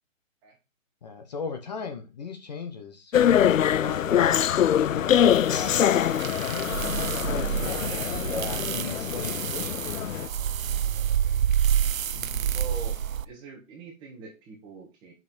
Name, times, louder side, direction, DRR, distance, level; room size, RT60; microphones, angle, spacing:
voice 1, 1.0-9.9 12.1-12.5, left 5 dB, 30° left, 5 dB, 1.2 m, -38 dB
sound 1, 3.1-10.3, left 10 dB, 75° left, 0.5 m, -24 dB
sound 2, 5.4-13.3, right 9 dB, 80° right, 0.7 m, -28 dB
voice 2, 10.3-11.4 12.5-13.0 13.2-15.1, right 3 dB, 10° right, 1 dB, 1.6 m, -44 dB
8.3 x 6.1 x 4.4 m, 0.27 s
hypercardioid pair, 165°, 40 cm